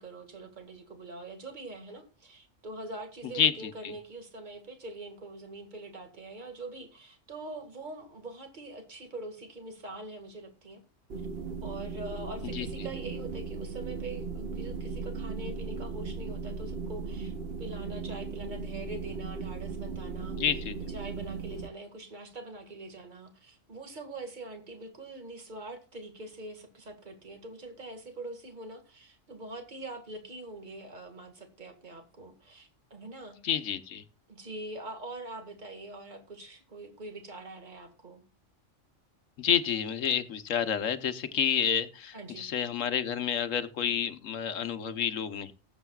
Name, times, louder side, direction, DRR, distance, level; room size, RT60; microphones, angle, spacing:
voice 1, 0.0-10.8 11.6-20.6 20.9-33.4 34.3-38.2 42.1-42.5, right 2 dB, 35° right, 6 dB, 2.1 m, -44 dB
sound 1, 11.1-21.7, right 4 dB, 55° right, 1.2 m, -37 dB
voice 2, 20.4-20.9 33.4-34.0 39.4-45.5, left 8 dB, 80° left, 11 dB, 1.3 m, -29 dB
19.5 x 8.1 x 2.4 m, 0.32 s
omnidirectional pair, 1.3 m